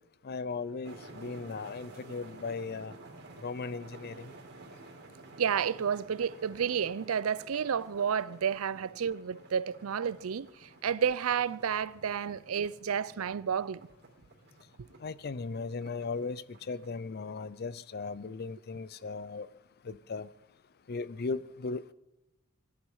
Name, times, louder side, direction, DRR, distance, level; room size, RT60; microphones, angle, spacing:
voice 1, 0.2-2.9 3.4-4.3 15.0-19.5 19.9-20.3 20.9-21.9, left 4 dB, 50° left, 0.5 m, -37 dB
sound 1, 0.8-17.0, right 2 dB, 55° right, 3.1 m, -53 dB
voice 2, 5.4-10.5 10.8-13.8, right 7 dB, 90° right, 0.5 m, -31 dB
17.5 x 11.5 x 5.6 m
head